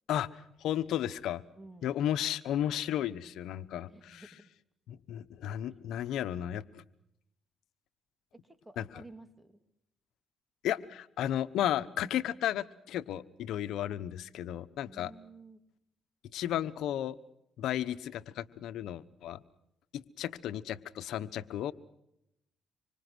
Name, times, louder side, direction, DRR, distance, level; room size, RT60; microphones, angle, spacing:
voice 1, 0.1-1.4 1.8-4.2 4.9-6.8 8.8-8.9 10.6-15.1 16.3-17.1 17.6-19.4 19.9-21.7, left 11 dB, 80° left, 14 dB, 1.1 m, -34 dB
voice 2, 1.6-1.9 3.9-4.5 5.7-5.9 8.4-9.6 14.9-15.6, right 2 dB, 10° right, 10 dB, 2.5 m, -53 dB
26.5 x 25.5 x 6.3 m, 0.80 s
cardioid pair, 90°, 0 cm